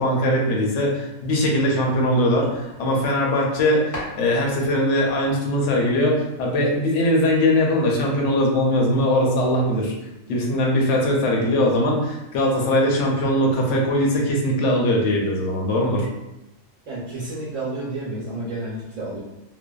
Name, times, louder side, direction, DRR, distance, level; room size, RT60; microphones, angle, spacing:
voice 1, 0.0-9.9 10.3-16.1, left 1 dB, 65° left, -1 dB, 0.8 m, -21 dB
sound 1, 2.7-3.6 3.9-6.5, equal, 25° left, 0.4 m, -41 dB
voice 2, 16.9-19.2, right 2 dB, 65° right, -8 dB, 1.0 m, -30 dB
2.5 x 2.2 x 2.2 m, 0.94 s
omnidirectional pair, 1.5 m